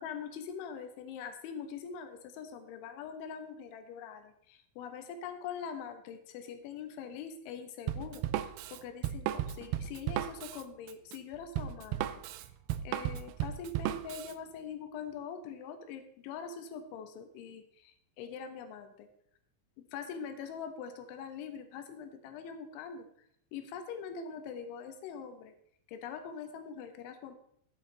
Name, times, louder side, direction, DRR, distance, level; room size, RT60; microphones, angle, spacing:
voice 1, 0.0-12.2 12.8-19.1 19.9-23.1 23.5-25.5 25.9-27.4, left 6 dB, 85° left, 8 dB, 3.5 m, -43 dB
Drum kit, 7.9-14.3, right 12 dB, 85° right, 2.3 m, -35 dB
11.5 x 8.5 x 3.9 m, 0.69 s
omnidirectional pair, 5.3 m